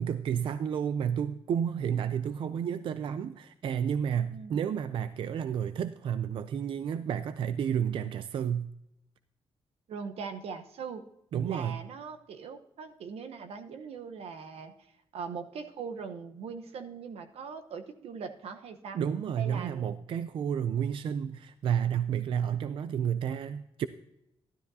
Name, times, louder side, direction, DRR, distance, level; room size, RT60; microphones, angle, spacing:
voice 1, 0.0-8.7 11.3-11.8 18.9-23.9, right 8 dB, 55° right, 13 dB, 0.4 m, -31 dB
voice 2, 4.3-4.7 9.9-11.1 11.4-14.7 15.1-19.0 19.4-20.0, right 6 dB, 85° right, 8 dB, 1.0 m, -41 dB
12.5 x 12.0 x 2.7 m, 0.82 s
wide cardioid pair, 180°, 10 cm